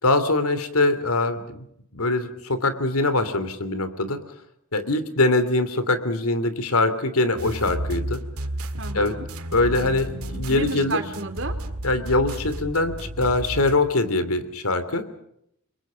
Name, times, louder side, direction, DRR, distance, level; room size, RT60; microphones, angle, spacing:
voice 1, 0.0-1.7 1.9-4.2 4.7-8.2 8.9-9.2 9.5-11.0 11.8-15.0, left 2 dB, 80° left, 11 dB, 3.0 m, -23 dB
sound 1, 7.4-13.8, right 1 dB, 80° right, 1.8 m, -32 dB
voice 2, 8.8-9.3 10.5-11.5, right 3 dB, 60° right, 7 dB, 3.6 m, -31 dB
30.0 x 23.5 x 5.2 m, 0.75 s
head